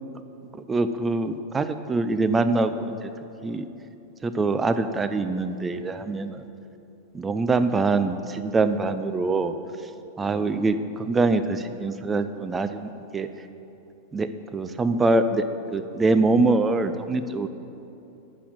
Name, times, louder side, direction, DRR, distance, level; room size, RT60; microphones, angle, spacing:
voice 1, 0.7-3.1 3.4-3.7 4.2-6.5 7.1-9.5 10.2-13.3 14.1-15.4 15.7-17.5, right 3 dB, 15° right, 10 dB, 0.4 m, -24 dB
11.0 x 4.1 x 7.5 m, 2.9 s
figure-of-eight pair, 90°, 0 cm